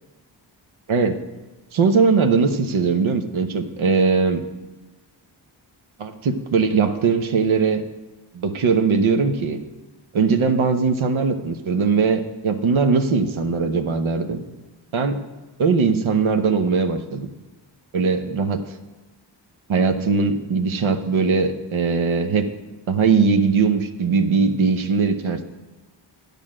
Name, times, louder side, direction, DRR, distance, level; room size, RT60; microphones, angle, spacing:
voice 1, 0.9-1.2 1.7-4.4 6.0-7.8 8.3-9.6 10.1-14.4 14.9-15.2 15.6-17.3 17.9-18.6 19.7-22.5 22.9-25.4, right 5 dB, 90° right, 7 dB, 0.9 m, -20 dB
11.0 x 5.2 x 7.5 m, 1.2 s
wide cardioid pair, 80°, 46 cm